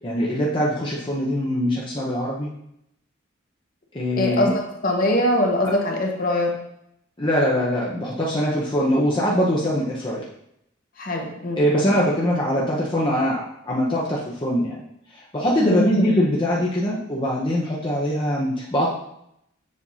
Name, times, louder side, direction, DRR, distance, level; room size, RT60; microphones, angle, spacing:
voice 1, 0.0-2.5 3.9-4.5 5.6-5.7 7.2-10.2 11.6-14.8 15.1-18.9, equal, 25° left, -5 dB, 0.8 m, -22 dB
voice 2, 4.2-4.5 4.8-6.5 11.0-11.6 15.6-16.2, left 1 dB, 45° left, 0 dB, 1.1 m, -22 dB
7.3 x 2.7 x 5.5 m, 0.78 s
head